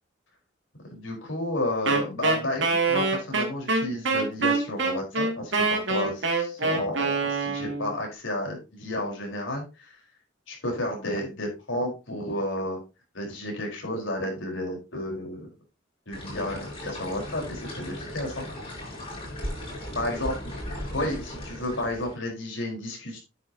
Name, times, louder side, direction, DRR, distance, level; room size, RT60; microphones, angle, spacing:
voice 1, 0.9-10.0 10.5-12.8 13.1-15.5 16.1-18.5 19.9-20.3 20.9-23.2, left 1 dB, 80° left, 0 dB, 4.6 m, -32 dB
Wind instrument woodwind instrument, 1.9-7.9, right 3 dB, 70° right, 2.5 m, -25 dB
sound 1, 16.1-22.2, left 1 dB, 25° left, 6.3 m, -37 dB
9.5 x 8.8 x 2.9 m, 0.28 s
head